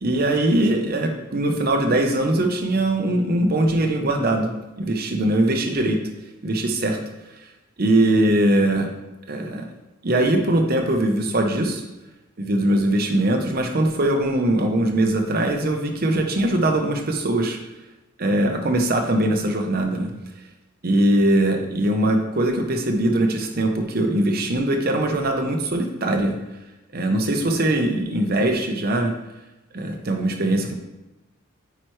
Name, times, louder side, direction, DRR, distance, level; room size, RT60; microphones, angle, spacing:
voice 1, 0.0-4.5 4.8-6.0 6.4-7.0 7.8-8.9 9.3-9.6 10.0-11.8 12.4-17.6 18.2-20.1 20.8-26.3 26.9-29.1 29.7-30.7, right 1 dB, 45° right, 3 dB, 0.7 m, -21 dB
9.0 x 4.5 x 3.1 m, 1.0 s
head